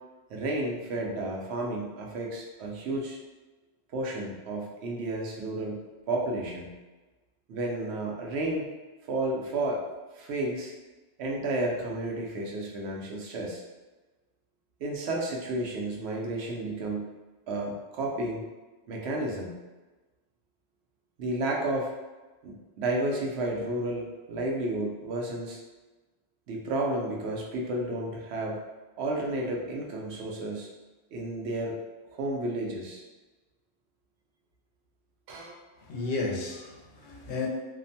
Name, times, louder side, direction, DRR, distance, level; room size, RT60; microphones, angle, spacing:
voice 1, 0.3-3.2 3.9-6.7 7.5-8.7 9.0-9.8 10.1-10.7 11.2-13.6 14.8-17.1 17.5-18.4 18.9-19.6 21.2-21.9 22.4-25.6 26.5-28.6 29.0-30.7 31.1-31.8 32.1-33.0 35.3-35.5, right 2 dB, 75° right, -1 dB, 0.8 m, -32 dB
voice 2, 35.8-37.5, left 3 dB, 85° left, -2 dB, 0.9 m, -33 dB
2.5 x 2.1 x 2.6 m, 1.2 s
omnidirectional pair, 1.1 m